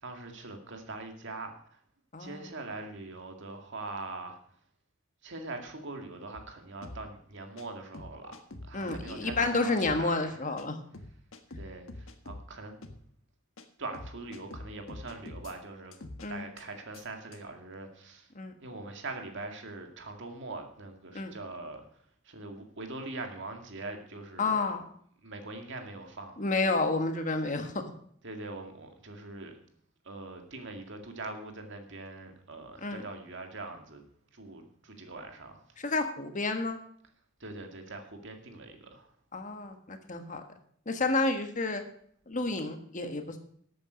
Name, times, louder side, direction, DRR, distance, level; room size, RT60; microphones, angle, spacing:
voice 1, 0.0-1.8 2.2-4.4 5.2-8.4 8.6-10.5 11.6-12.8 13.8-16.0 16.3-18.3 18.6-21.8 22.2-24.7 25.2-26.4 28.2-29.5 30.0-34.1 34.3-35.8 37.4-39.1, right 2 dB, 60° right, 4 dB, 2.1 m, -42 dB
sound 1, 6.3-6.5 6.8-7.0 7.6-7.7 7.9-9.5 9.8-10.0 10.6-10.7 10.9-12.4 12.8-13.0 13.6-13.7 13.9-15.5 15.9-16.3 16.6-16.7 16.9-17.0 17.3-17.4, left 1 dB, 75° left, 1.5 m, -44 dB
voice 2, 8.7-10.8 16.2-16.4 18.3-18.5 21.1-21.3 24.4-24.8 26.4-27.7 32.8-33.0 35.8-36.8 39.3-40.4 40.9-41.8 42.3-43.4, left 3 dB, 40° left, 6 dB, 1.5 m, -30 dB
13.0 x 8.8 x 5.2 m, 0.63 s
head